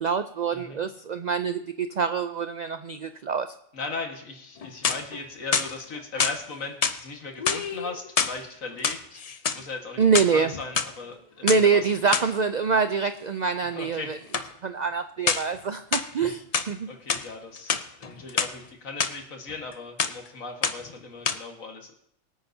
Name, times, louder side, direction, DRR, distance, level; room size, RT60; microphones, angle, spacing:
voice 1, 0.0-3.5 10.0-10.5 11.4-14.2 14.6-16.9, right 5 dB, 75° right, 10 dB, 0.4 m, -25 dB
voice 2, 0.5-0.9 3.7-9.2 9.5-10.0 10.3-12.2 13.6-14.2 16.1-16.3 16.9-21.9, left 3 dB, 85° left, 3 dB, 2.1 m, -38 dB
sound 1, 4.6-5.2 5.5-6.4 6.8-7.0 7.4-8.4 8.7-9.6 10.0-10.9 11.5-11.6 12.1-12.3 14.3-14.5 15.3-15.6 15.9-16.7 17.1-17.3 17.6-18.5 19.0-19.1 19.5-19.7 20.0-20.3 20.6-20.9 21.2-21.4, left 6 dB, 45° left, 0.5 m, -27 dB
24.5 x 8.7 x 2.7 m, 0.69 s
omnidirectional pair, 1.3 m